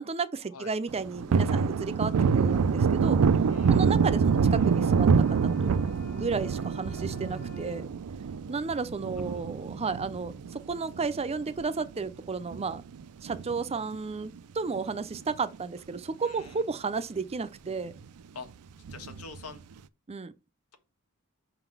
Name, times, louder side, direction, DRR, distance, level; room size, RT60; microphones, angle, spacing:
voice 1, 0.0-3.2 3.7-5.8 6.1-7.8 8.5-12.8 13.2-17.9 20.1-20.3, right 4 dB, 30° right, 0.5 m, -33 dB
Thunder, 0.9-11.6 12.0-12.1 12.5-14.0 14.2-14.4 14.7-15.6 16.0-16.1 16.4-16.5 18.9-19.4, right 5 dB, 80° right, 0.4 m, -26 dB
voice 2, 3.5-3.9 16.2-16.5 18.3-18.5 18.9-19.6, left 4 dB, 90° left, 1.4 m, -44 dB
sound 1, 3.8-7.9, left 1 dB, 40° left, 0.6 m, -49 dB
6.1 x 3.9 x 5.9 m
head